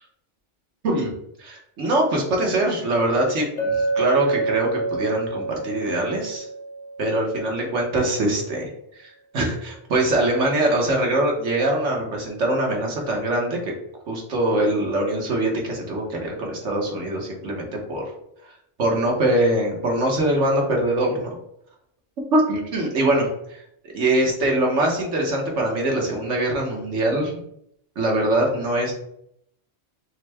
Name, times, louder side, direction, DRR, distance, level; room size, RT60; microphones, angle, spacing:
voice 1, 1.4-6.5 7.0-8.7 9.0-13.7 14.1-18.0 18.8-21.4 22.3-23.6 23.9-27.3 28.0-28.9, right 1 dB, 70° right, 0 dB, 1.4 m, -23 dB
Chink clink, 3.6-7.6, right 3 dB, 80° left, 1.1 m, -27 dB
6.4 x 2.2 x 3.4 m, 0.74 s
omnidirectional pair, 1.3 m